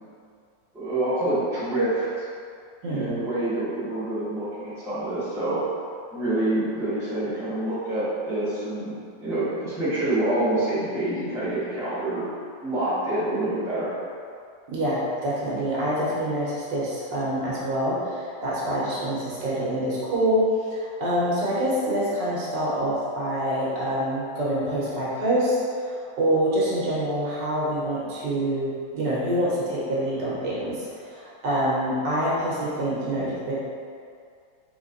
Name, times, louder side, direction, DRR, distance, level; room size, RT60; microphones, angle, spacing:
voice 1, 0.7-2.3 2.9-5.6 6.1-12.3 12.6-13.9, right 1 dB, ahead, -13 dB, 1.0 m, -27 dB
voice 2, 2.8-3.2 14.7-20.4 20.7-33.5, equal, 75° right, -7 dB, 1.6 m, -26 dB
4.1 x 3.6 x 2.6 m, 2.3 s
omnidirectional pair, 2.0 m